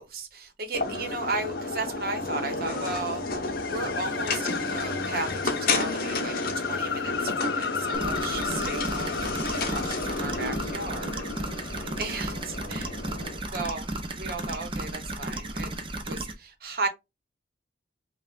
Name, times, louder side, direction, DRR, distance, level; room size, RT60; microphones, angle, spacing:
voice 1, 0.0-13.0 13.3-15.7 16.1-16.9, right 3 dB, 55° right, 1.0 m, -35 dB
sound 1, 0.7-13.4, left 3 dB, 55° left, 0.8 m, -32 dB
sound 2, 0.9-12.3, left 7 dB, 75° left, 0.4 m, -36 dB
sound 3, 7.9-16.3, right 1 dB, 30° right, 0.6 m, -34 dB
5.4 x 2.3 x 2.4 m
head